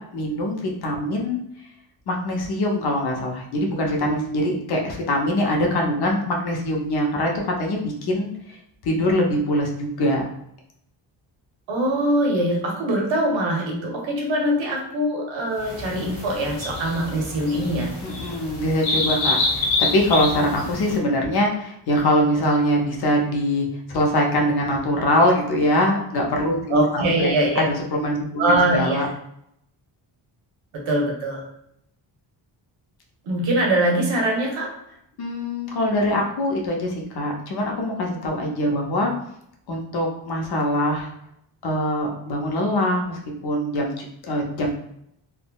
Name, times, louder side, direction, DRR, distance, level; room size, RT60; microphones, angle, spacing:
voice 1, 0.1-1.4 2.1-7.3 7.6-8.6 8.8-10.2 18.0-29.1 35.2-39.1 39.7-41.1 41.6-44.7, left 1 dB, 55° left, 0 dB, 0.7 m, -23 dB
voice 2, 11.7-18.0 26.7-27.6 28.4-29.1 30.9-31.4 33.2-34.7, right 1 dB, 80° right, -1 dB, 1.0 m, -22 dB
sound 1, 15.6-21.0, left 3 dB, 80° left, 1.1 m, -27 dB
3.5 x 2.1 x 2.2 m, 0.74 s
wide cardioid pair, 175°, 46 cm